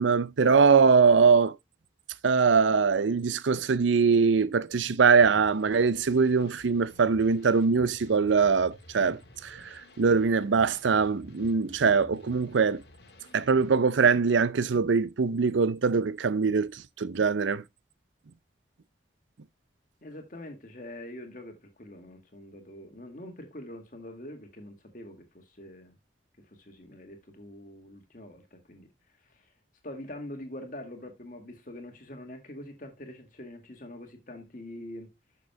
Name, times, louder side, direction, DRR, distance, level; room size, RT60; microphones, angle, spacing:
voice 1, 0.0-1.6 2.2-12.8 13.3-17.6, right 5 dB, 85° right, 0.5 m, -22 dB
sound 1, 5.2-13.8, left 1 dB, 65° left, 1.8 m, -52 dB
voice 2, 20.0-26.0 26.4-28.9 29.2-29.5 29.8-35.2, left 1 dB, 45° left, 1.9 m, -44 dB
11.5 x 6.7 x 2.2 m
head